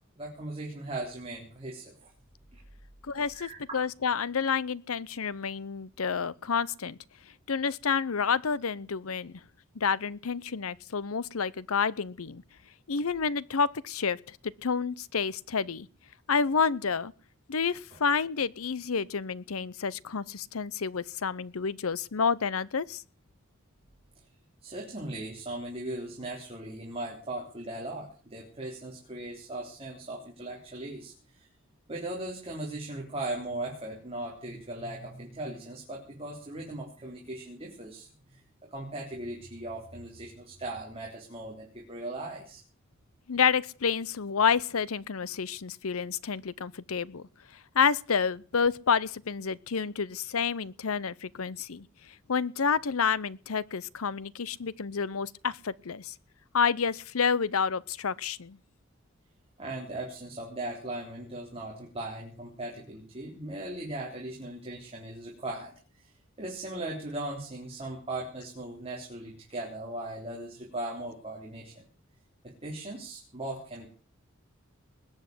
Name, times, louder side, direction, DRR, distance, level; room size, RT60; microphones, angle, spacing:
voice 1, 0.2-2.1 2.5-2.6 3.3-3.6 17.9-18.0 24.6-31.5 31.9-42.6 59.6-66.1 66.4-71.8 72.4-73.9, right 1 dB, 30° right, 3.7 m, -38 dB
voice 2, 3.0-7.0 7.5-9.4 9.7-12.4 12.9-15.9 16.3-17.1 17.5-23.0 43.3-47.2 47.7-51.9 52.3-56.1 56.5-58.6, left 6 dB, 85° left, 0.7 m, -29 dB
20.5 x 8.1 x 7.9 m
head